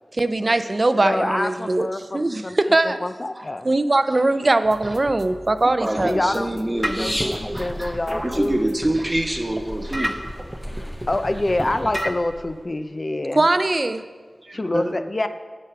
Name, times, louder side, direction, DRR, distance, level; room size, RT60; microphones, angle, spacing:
voice 1, 0.1-1.9 2.1-3.0 3.6-6.2 13.3-14.0 14.5-14.6, right 2 dB, 45° right, 11 dB, 0.5 m, -20 dB
voice 2, 1.0-2.6 2.8-3.7 6.0-8.7 10.8-13.4 14.5-15.3, left 2 dB, 45° left, 9 dB, 0.6 m, -26 dB
sound 1, 4.6-12.1, equal, 10° right, 0.8 m, -33 dB
voice 3, 5.8-10.2 14.7-15.0, right 1 dB, 25° right, 4 dB, 1.1 m, -26 dB
sound 2, 6.7-12.6, equal, 15° left, 1.7 m, -35 dB
8.2 x 7.1 x 5.8 m, 1.5 s
wide cardioid pair, 50°, 0 cm